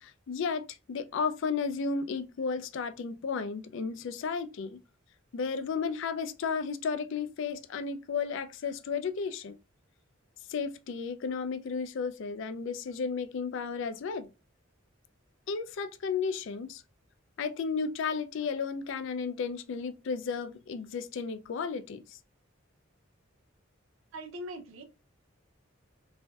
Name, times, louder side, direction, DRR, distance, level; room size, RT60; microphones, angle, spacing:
voice 1, 0.0-4.8 5.3-9.6 10.5-14.3 15.5-16.8 17.4-22.2, left 5 dB, 65° left, 0.4 m, -33 dB
voice 2, 24.1-24.8, equal, 85° right, 0.6 m, -41 dB
3.1 x 2.5 x 2.2 m
head